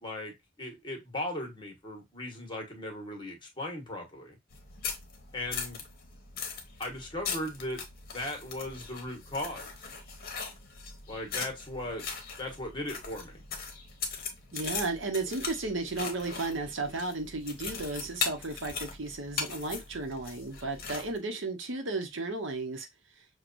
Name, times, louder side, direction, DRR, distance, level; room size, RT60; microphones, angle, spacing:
voice 1, 0.0-4.4 5.3-5.8 6.8-7.8 8.1-9.7 11.1-12.0 12.4-13.3, left 1 dB, 25° left, 1.1 m, -37 dB
sound 1, 4.5-21.2, left 5 dB, 50° left, 0.9 m, -39 dB
voice 2, 14.5-22.9, right 3 dB, 75° right, 0.9 m, -34 dB
6.0 x 2.3 x 2.5 m
head